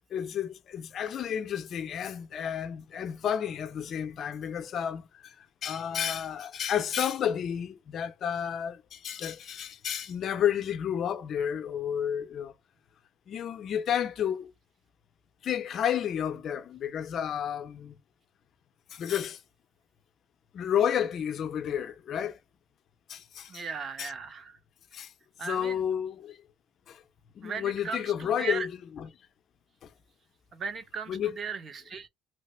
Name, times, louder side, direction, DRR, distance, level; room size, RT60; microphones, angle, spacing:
voice 1, 0.1-5.1 5.6-12.5 13.3-14.5 15.4-18.0 18.9-19.4 20.5-22.4 23.1-23.6 24.0-24.1 24.9-25.1 25.4-26.4 26.9-27.0 27.4-28.7 29.0-29.1 31.1-31.4, left 9 dB, 50° left, 0.5 m, -31 dB
voice 2, 23.5-24.6 25.4-25.8 27.4-28.7 30.5-32.1, right 5 dB, 40° right, 0.7 m, -37 dB
3.2 x 2.1 x 3.0 m
cardioid pair, 105°, 0 cm